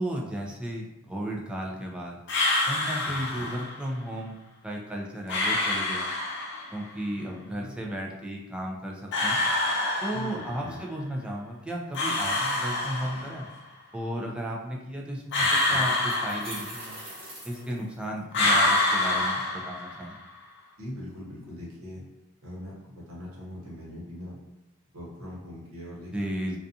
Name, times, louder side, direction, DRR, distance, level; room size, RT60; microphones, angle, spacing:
voice 1, 0.0-2.2 2.7-4.4 4.6-6.1 6.7-9.4 10.0-13.5 13.9-17.0 17.4-20.2 26.1-26.6, right 1 dB, 5° right, -2 dB, 0.3 m, -34 dB
sound 1, 2.3-3.8 5.3-6.8 9.1-10.7 11.9-13.5 15.3-17.1 18.3-20.2, left 2 dB, 55° left, 0.5 m, -26 dB
voice 2, 3.0-3.5 7.1-7.8 10.1-10.8 15.4-15.9 20.8-22.0 22.4-24.4 24.9-26.6, left 1 dB, 70° right, -4 dB, 0.9 m, -41 dB
sound 2, 15.9-18.4, right 1 dB, 30° right, 0.9 m, -43 dB
2.4 x 2.3 x 2.6 m, 0.91 s
head